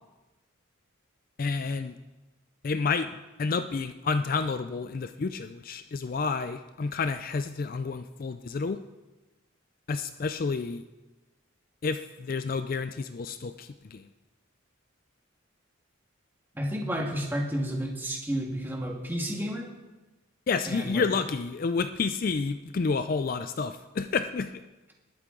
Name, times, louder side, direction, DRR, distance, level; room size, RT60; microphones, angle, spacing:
voice 1, 1.4-1.9 2.6-3.1 3.4-8.8 9.9-10.8 11.8-14.1 20.5-24.6, left 4 dB, 40° left, 10 dB, 0.4 m, -30 dB
voice 2, 16.5-19.7 20.7-21.1, equal, 10° right, 0 dB, 1.7 m, -31 dB
20.0 x 8.3 x 3.8 m, 1.1 s
head